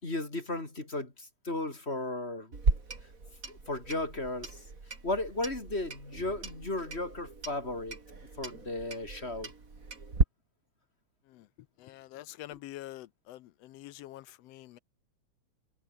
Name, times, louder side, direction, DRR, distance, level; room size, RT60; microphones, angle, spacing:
voice 1, 0.0-2.5 3.5-4.6 5.0-8.0 8.4-9.5 12.5-12.6, left 2 dB, 20° left, 3.6 m, -35 dB
Clock, 2.5-10.2, right 3 dB, 30° right, 3.2 m, -35 dB
voice 2, 11.8-14.8, left 15 dB, 75° left, 1.6 m, -46 dB
omnidirectional pair, 3.3 m